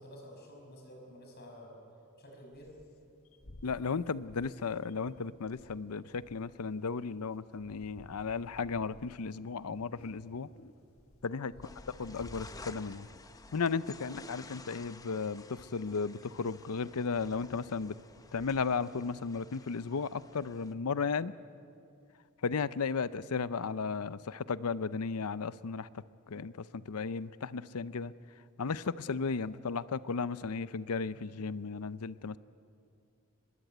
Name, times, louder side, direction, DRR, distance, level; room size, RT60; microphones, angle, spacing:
voice 1, 0.0-1.8 2.2-2.8 11.5-11.7 23.0-23.2 26.3-26.5 29.3-29.5 31.1-31.4, equal, 45° left, 1 dB, 6.3 m, -52 dB
sound 1, 2.5-18.6, left 1 dB, 65° left, 1.5 m, -57 dB
voice 2, 3.6-10.5 11.2-11.5 12.0-13.1 13.5-17.9 18.3-21.3 22.4-25.9 26.3-28.1 28.6-32.4, left 5 dB, 85° left, 16 dB, 0.6 m, -35 dB
sound 2, 11.6-20.7, left 3 dB, 15° left, 0.8 m, -53 dB
24.5 x 21.0 x 9.2 m, 2.4 s
head